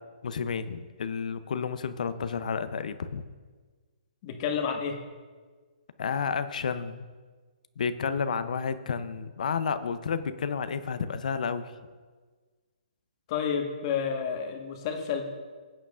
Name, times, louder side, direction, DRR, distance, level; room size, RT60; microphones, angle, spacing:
voice 1, 0.2-3.2 6.0-7.1 7.8-11.7, left 6 dB, 65° left, 12 dB, 0.6 m, -31 dB
voice 2, 4.2-5.0 13.3-15.3, left 7 dB, 35° left, 3 dB, 1.4 m, -30 dB
17.0 x 8.9 x 2.5 m, 1.4 s
hypercardioid pair, 145°, 4 cm